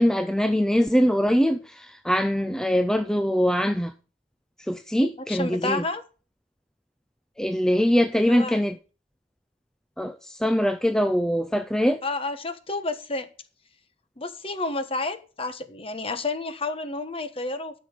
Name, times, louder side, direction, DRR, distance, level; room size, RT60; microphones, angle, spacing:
voice 1, 0.0-3.9 4.7-5.8 7.4-8.8 10.0-12.0, equal, 5° left, 0.4 m, -22 dB
voice 2, 4.9-6.0 8.3-8.6 12.0-13.3 14.2-17.7, left 2 dB, 30° left, 1.2 m, -30 dB
12.5 x 6.3 x 5.3 m
head